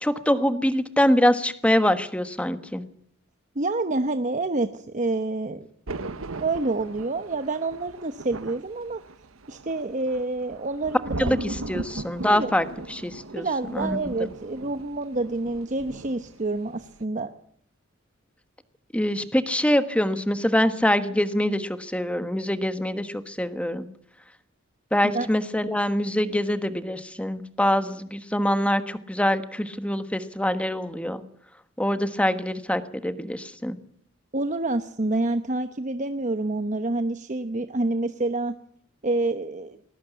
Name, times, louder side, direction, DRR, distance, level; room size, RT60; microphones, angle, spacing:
voice 1, 0.0-2.8 11.2-11.4 11.7-13.4 13.7-14.1 18.9-23.9 24.9-31.2 31.8-33.8, left 1 dB, 5° left, 11 dB, 1.3 m, -24 dB
voice 2, 3.5-5.7 6.4-9.0 9.5-11.4 12.3-12.5 13.3-17.3 25.1-25.3 34.3-38.5 39.0-39.8, right 2 dB, 40° right, 9 dB, 1.0 m, -27 dB
Thunder, 5.9-16.5 16.7-17.0, right 2 dB, 80° right, 1.1 m, -38 dB
20.5 x 18.0 x 8.2 m, 0.67 s
head